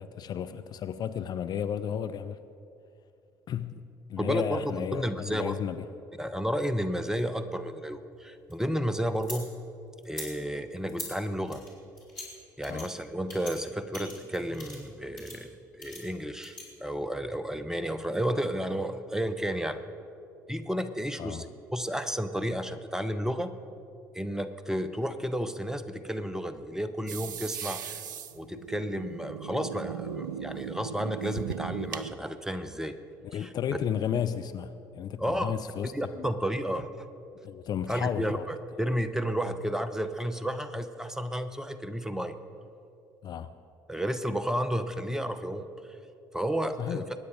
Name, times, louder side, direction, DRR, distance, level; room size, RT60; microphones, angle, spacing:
voice 1, 0.0-2.4 3.5-3.8 4.1-5.9 12.7-12.9 21.2-21.5 33.2-36.3 37.4-38.4 43.2-43.5 46.8-47.0, left 8 dB, 40° left, 10 dB, 0.5 m, -33 dB
voice 2, 4.2-5.5 6.2-9.5 10.1-11.6 12.6-15.5 15.8-19.8 20.5-23.5 24.1-27.8 28.3-32.9 33.3-33.5 35.2-35.5 35.9-36.9 37.9-42.3 43.9-45.7 46.3-47.1, equal, 5° right, 11 dB, 0.9 m, -32 dB
sound 1, 8.1-9.4 10.0-10.3 10.9-11.1 11.5-12.3 12.6-12.9 13.3-13.5 13.9-14.9 15.2-15.4 15.8-16.6, left 1 dB, 85° left, 3.5 m, -42 dB
sound 2, 27.1-32.1, right 9 dB, 75° right, 0.4 m, -38 dB
22.5 x 9.6 x 5.1 m, 2.6 s
figure-of-eight pair, 55°, 10 cm